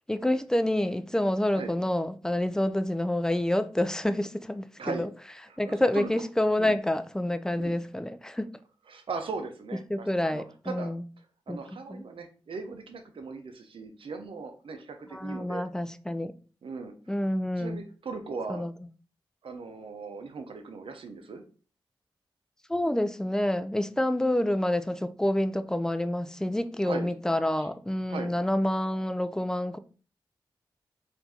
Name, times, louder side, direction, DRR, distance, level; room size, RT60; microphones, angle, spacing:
voice 1, 0.1-5.1 5.6-8.5 9.9-11.1 11.5-11.6 11.9-12.0 15.1-16.3 17.1-17.8 18.5-18.7 22.7-29.8, left 1 dB, 5° left, 0.5 m, -28 dB
voice 2, 5.5-6.1 6.6-6.8 7.6-7.8 8.9-10.9 11.5-15.6 16.6-16.9 17.6-18.7 19.4-21.4 26.8-27.1 27.6-27.7 28.1-28.3, right 4 dB, 70° right, 0.8 m, -38 dB
4.3 x 2.7 x 4.3 m
cardioid pair, 40°, 9 cm